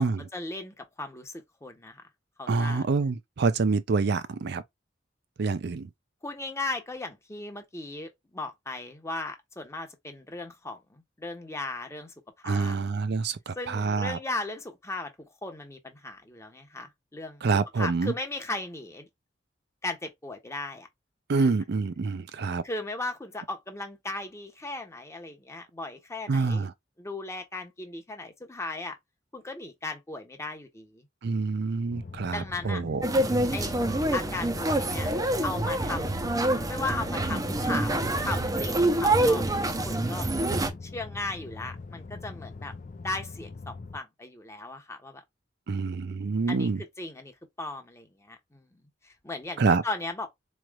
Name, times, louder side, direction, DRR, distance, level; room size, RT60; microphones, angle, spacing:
voice 1, 0.0-2.0 2.4-2.9 6.2-12.8 13.5-15.1 15.4-17.4 17.7-19.1 19.8-20.9 21.4-21.5 22.6-26.7 27.0-29.0 29.3-31.1 32.3-32.8 33.5-33.8 34.1-35.1 35.4-40.3 40.8-42.7 43.0-45.2 46.5-46.7 47.0-50.3, left 2 dB, 15° left, 0.9 m, -37 dB
voice 2, 2.5-4.6 5.4-5.9 12.4-14.2 17.4-18.1 21.3-22.6 26.3-26.7 31.2-33.0 45.7-46.8 49.6-49.8, right 4 dB, 60° right, 0.5 m, -26 dB
sound 1, 31.9-44.0, left 3 dB, 45° left, 0.5 m, -42 dB
sound 2, 33.0-40.7, right 1 dB, 20° right, 0.6 m, -26 dB
4.2 x 3.1 x 2.3 m
head